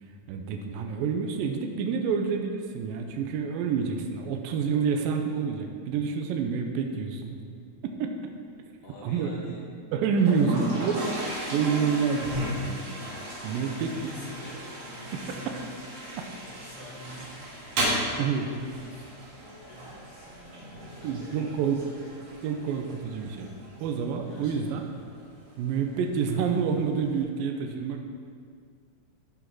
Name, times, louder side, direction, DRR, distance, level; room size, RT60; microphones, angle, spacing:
voice 1, 0.3-7.4 8.0-8.1 9.0-9.3 9.9-11.0 11.5-12.8 13.4-13.9 15.3-15.6 18.2-18.5 21.0-21.8 22.4-23.5 23.8-24.8 25.6-28.1, right 6 dB, 80° right, 3 dB, 2.3 m, -28 dB
voice 2, 8.8-9.7 10.4-10.9 13.5-15.7 16.4-17.5 18.2-22.1 24.3-24.9, left 1 dB, 85° left, -5 dB, 4.2 m, -46 dB
Toilet flush, 10.2-27.2, right 1 dB, 45° right, 2.3 m, -36 dB
13.5 x 6.2 x 4.8 m, 2.1 s
omnidirectional pair, 4.5 m